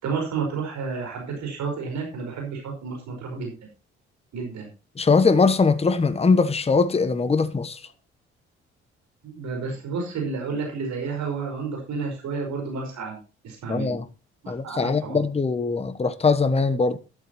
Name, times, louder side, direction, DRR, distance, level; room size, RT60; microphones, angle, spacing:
voice 1, 0.0-3.5 4.3-4.7 9.2-13.9 14.4-15.2, right 4 dB, 55° right, 5.1 m, -31 dB
voice 2, 5.0-7.8 13.7-14.0 14.5-17.0, left 4 dB, 20° left, 1.1 m, -21 dB
12.5 x 12.0 x 3.0 m
figure-of-eight pair, 45°, 33 cm